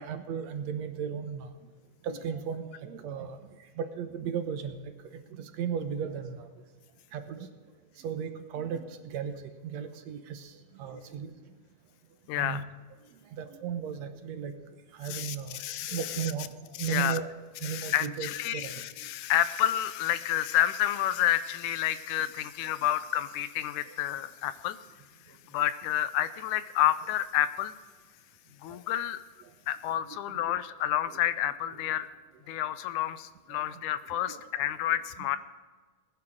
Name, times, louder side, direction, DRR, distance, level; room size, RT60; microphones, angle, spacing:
voice 1, 0.0-1.5 2.0-3.4 3.8-4.8 5.0-6.5 7.1-7.5 8.0-11.3 12.4-12.6 13.3-14.5 14.9-15.6 15.9-16.5 16.8-17.3 17.6-18.8 23.9-24.0 28.7-28.8 30.1-30.2 33.5-33.6 34.3-34.4, right 7 dB, 70° right, 8 dB, 2.1 m, -35 dB
voice 2, 12.3-12.6 15.1-16.3 16.8-17.2 17.6-24.8 25.3-27.7 28.6-29.2 29.7-32.1 32.5-35.4, left 12 dB, 80° left, 14 dB, 2.1 m, -29 dB
20.5 x 10.5 x 3.7 m, 1.4 s
omnidirectional pair, 3.5 m